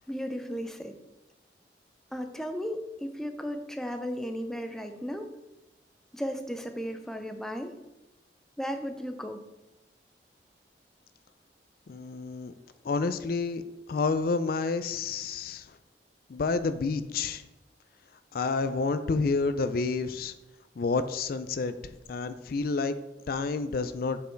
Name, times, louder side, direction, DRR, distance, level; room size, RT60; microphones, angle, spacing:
voice 1, 0.1-0.9 2.1-5.3 6.1-7.7 8.6-9.5, equal, ahead, 6 dB, 0.5 m, -35 dB
voice 2, 11.9-12.5 12.8-13.6 13.9-15.8 16.3-17.4 18.3-20.3 20.8-22.9 23.3-24.2, left 4 dB, 55° left, 11 dB, 0.4 m, -29 dB
6.7 x 5.3 x 4.5 m, 1.0 s
head